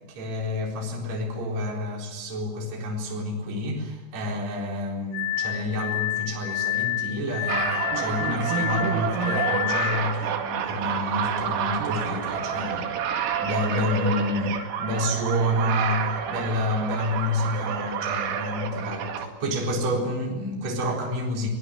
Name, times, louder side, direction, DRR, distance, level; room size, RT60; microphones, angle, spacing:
voice 1, 0.1-12.9 13.4-21.5, left 1 dB, 35° right, -1 dB, 5.0 m, -29 dB
Glass, 5.1-10.2, left 15 dB, 85° left, 4.0 m, -29 dB
sound 1, 7.5-19.3, right 7 dB, 75° right, 4.7 m, -29 dB
23.0 x 19.5 x 9.9 m, 1.1 s
omnidirectional pair, 6.0 m